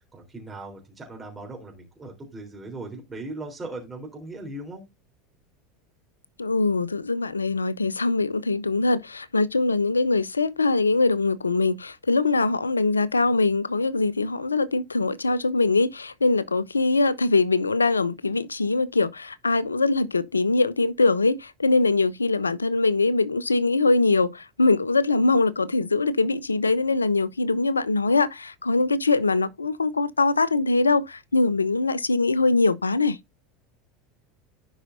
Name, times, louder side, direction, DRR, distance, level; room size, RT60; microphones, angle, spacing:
voice 1, 0.1-4.8, right 2 dB, 15° right, 3.6 m, -38 dB
voice 2, 6.4-33.2, left 3 dB, 85° left, 0.5 m, -22 dB
15.5 x 5.5 x 2.6 m
figure-of-eight pair, 80°, 0 cm